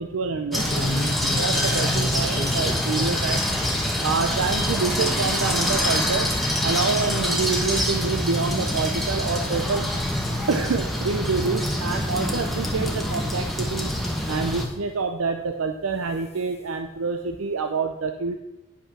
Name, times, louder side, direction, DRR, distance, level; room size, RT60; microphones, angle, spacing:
voice 1, 0.0-3.4 4.0-6.3 6.6-9.9 10.5-13.9 14.3-18.4, right 4 dB, 85° right, 6 dB, 0.6 m, -27 dB
sound 1, 0.5-14.7, left 1 dB, ahead, 1.0 m, -25 dB
sound 2, 0.6-3.9 4.3-8.5 8.9-9.2 9.8-10.1 10.4-10.7 11.3-11.4 11.8-11.9 13.0-13.1 13.9-14.7 15.8-16.0 16.4-16.5 16.8-16.9, left 1 dB, 30° left, 0.7 m, -34 dB
10.0 x 5.5 x 6.0 m, 1.0 s
head